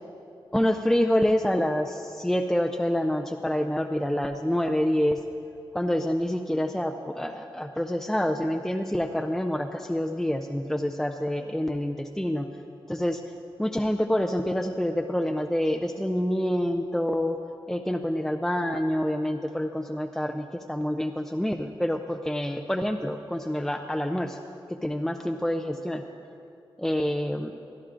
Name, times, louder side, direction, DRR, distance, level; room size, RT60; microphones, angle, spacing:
voice 1, 0.5-5.2 5.7-12.5 12.9-13.2 13.6-17.4 17.7-24.4 24.7-26.0 26.8-27.5, equal, 5° left, 4 dB, 0.4 m, -27 dB
23.5 x 11.5 x 2.5 m, 2.6 s
wide cardioid pair, 135°, 10 cm